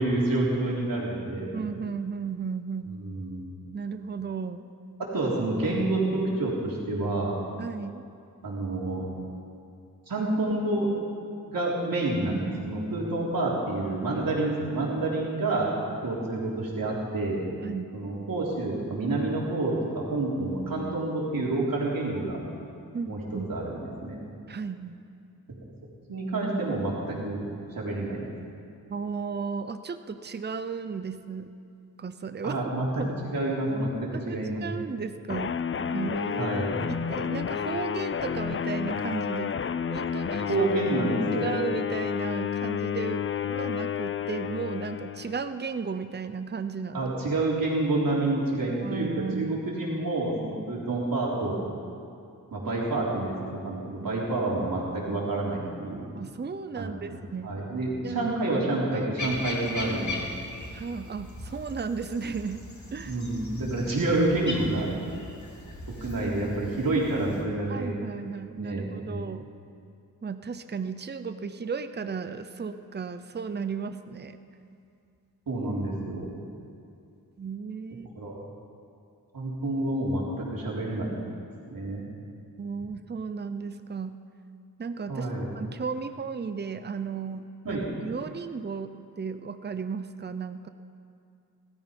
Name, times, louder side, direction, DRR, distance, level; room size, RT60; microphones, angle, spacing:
voice 1, 0.0-1.5 3.0-3.4 5.1-7.4 8.4-9.1 10.1-10.9 11.5-15.7 16.0-17.4 17.9-22.4 23.1-24.1 26.1-27.4 27.8-28.3 32.4-33.9 34.3-34.6 36.4-36.8 40.5-41.5 46.9-49.1 49.4-51.6 52.5-56.0 56.8-56.9 57.4-60.3 63.1-64.9 66.0-68.0 68.6-69.2 75.5-76.3 78.2-78.3 79.3-81.2 81.7-82.0 85.1-85.5 87.6-87.9, right 2 dB, 65° right, -4 dB, 3.7 m, -28 dB
voice 2, 1.5-3.0 3.7-4.7 7.6-8.1 17.6-17.9 22.9-23.5 24.5-25.0 28.9-31.5 32.0-32.6 33.0-33.1 33.7-35.6 35.9-36.5 36.9-39.5 39.9-40.6 41.4-47.1 48.8-49.6 56.1-57.6 58.0-58.6 58.9-59.4 60.7-62.6 62.9-63.1 65.1-65.3 67.7-69.4 70.2-74.4 77.4-78.1 82.6-84.2 84.8-90.7, right 5 dB, 30° right, 10 dB, 0.7 m, -35 dB
sound 1, 35.3-45.5, left 7 dB, 35° left, 0.5 m, -30 dB
sound 2, 59.2-67.4, left 2 dB, 50° left, 2.9 m, -39 dB
16.5 x 13.5 x 5.3 m, 2.5 s
cardioid pair, 70°, 36 cm